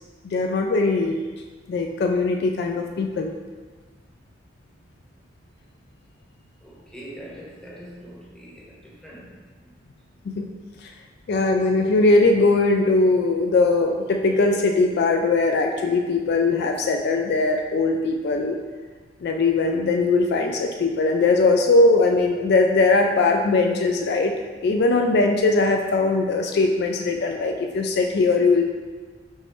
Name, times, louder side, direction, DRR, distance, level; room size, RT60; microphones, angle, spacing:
voice 1, 0.2-1.2 1.7-3.3 10.4-10.5 10.8-10.9 11.3-18.6 19.2-24.3 24.6-28.6, left 3 dB, 60° left, 3 dB, 0.3 m, -20 dB
voice 2, 6.6-9.7, equal, 5° left, -6 dB, 0.9 m, -43 dB
5.4 x 3.1 x 3.0 m, 1.4 s
head